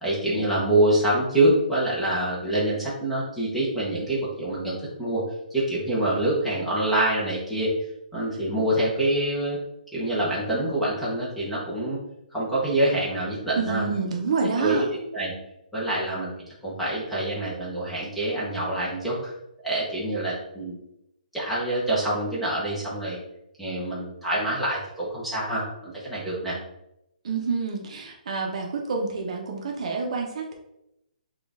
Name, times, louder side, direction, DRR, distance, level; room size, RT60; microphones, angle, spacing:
voice 1, 0.0-5.2 5.5-7.7 8.1-9.6 9.9-12.0 12.3-13.8 14.6-15.3 15.7-16.3 16.6-19.3 19.6-20.8 21.3-23.2 23.6-26.6, right 1 dB, ahead, -8 dB, 0.8 m, -26 dB
voice 2, 13.5-14.9 27.2-30.5, right 4 dB, 45° right, 1 dB, 0.8 m, -28 dB
6.0 x 2.4 x 3.5 m, 0.83 s
hypercardioid pair, 175°, 5 cm